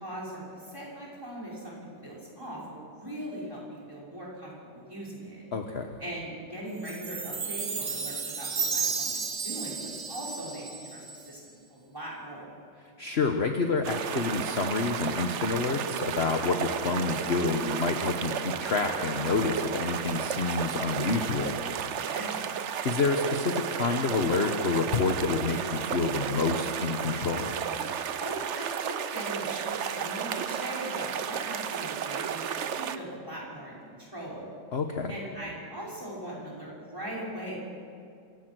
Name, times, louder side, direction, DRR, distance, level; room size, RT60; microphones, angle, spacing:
voice 1, 0.0-5.4 6.0-12.5 22.0-22.5 28.2-34.5 35.1-37.6, right 1 dB, 10° right, -5 dB, 5.9 m, -40 dB
voice 2, 5.5-5.9 13.0-21.5 22.8-27.5 34.7-35.2, left 4 dB, 40° left, 4 dB, 1.2 m, -28 dB
Chime, 6.9-11.3, right 5 dB, 40° right, 1.6 m, -33 dB
sound 1, 13.8-33.0, right 8 dB, 70° right, 0.6 m, -33 dB
26.0 x 17.0 x 6.2 m, 2.4 s
omnidirectional pair, 2.1 m